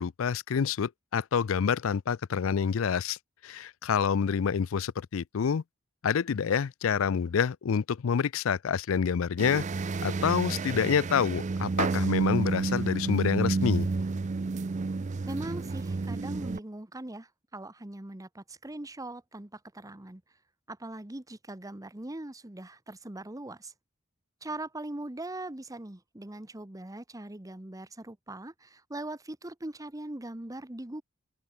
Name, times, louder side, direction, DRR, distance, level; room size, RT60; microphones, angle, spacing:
voice 1, 0.0-3.2 3.4-5.6 6.0-9.6 10.0-13.9, left 6 dB, 70° left, 0.4 m, -27 dB
sound 1, 9.4-16.6, right 3 dB, 35° right, 0.4 m, -30 dB
voice 2, 15.3-20.2 20.7-23.7 24.4-31.0, right 1 dB, 15° right, 1.1 m, -41 dB
open air
head